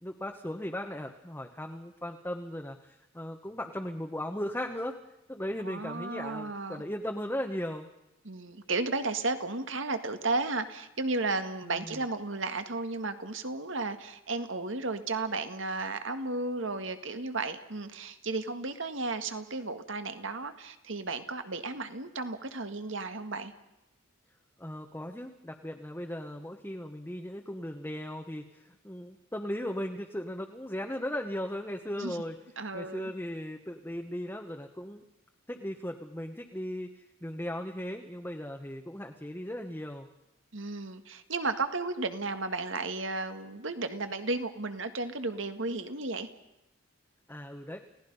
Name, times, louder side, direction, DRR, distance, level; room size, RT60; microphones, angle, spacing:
voice 1, 0.0-5.0 5.3-7.9 11.6-12.0 24.6-32.4 32.7-35.0 35.5-36.9 37.2-40.1 47.3-47.8, left 1 dB, 10° left, 3 dB, 1.1 m, -37 dB
voice 2, 5.6-6.8 8.2-23.5 32.0-32.2 32.6-33.1 40.5-46.3, right 3 dB, 65° right, 9 dB, 1.8 m, -34 dB
30.0 x 18.0 x 5.5 m, 0.91 s
head